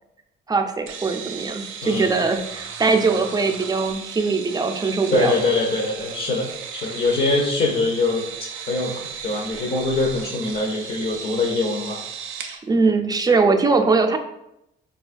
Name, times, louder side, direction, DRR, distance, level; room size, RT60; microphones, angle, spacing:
voice 1, 0.5-5.4 12.7-14.2, right 4 dB, 20° right, 5 dB, 0.4 m, -21 dB
sound 1, 0.9-12.6, right 7 dB, 80° right, 0.4 m, -36 dB
voice 2, 1.8-2.1 5.1-8.3 8.6-12.0, left 3 dB, 50° left, -1 dB, 0.6 m, -23 dB
3.9 x 2.2 x 2.5 m, 0.82 s
cardioid pair, 90°, 20 cm